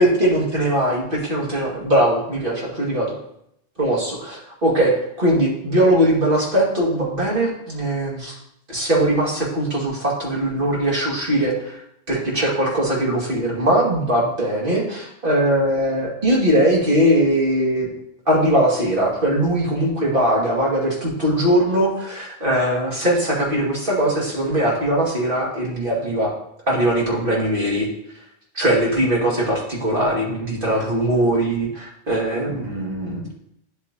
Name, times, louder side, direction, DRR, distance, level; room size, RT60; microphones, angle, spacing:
voice 1, 0.0-3.1 3.8-8.4 8.7-11.8 12.1-17.9 18.3-26.3 26.7-27.9 28.5-33.3, right 1 dB, 45° right, -3 dB, 2.4 m, -20 dB
9.6 x 8.3 x 2.8 m, 0.75 s
omnidirectional pair, 1.3 m